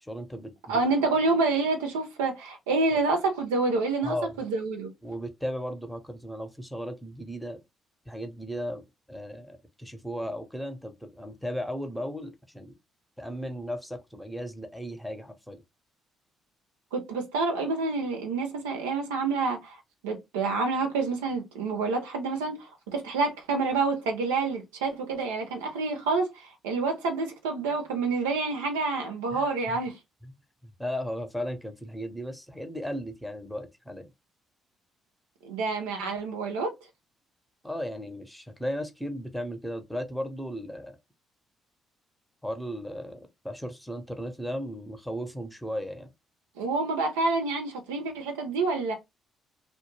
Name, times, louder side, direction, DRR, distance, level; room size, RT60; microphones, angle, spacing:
voice 1, 0.0-0.8 2.9-3.0 4.0-4.4 5.0-7.6 8.1-12.7 13.2-15.6 29.3-29.8 30.2-30.3 30.6-34.1 37.6-41.0 42.4-46.1, equal, ahead, 0.7 m, -36 dB
voice 2, 0.7-4.9 16.9-19.8 20.0-22.7 22.9-30.0 35.4-36.7 46.6-48.9, right 3 dB, 80° right, 0.5 m, -28 dB
2.3 x 2.1 x 3.1 m
hypercardioid pair, 45°, 0 cm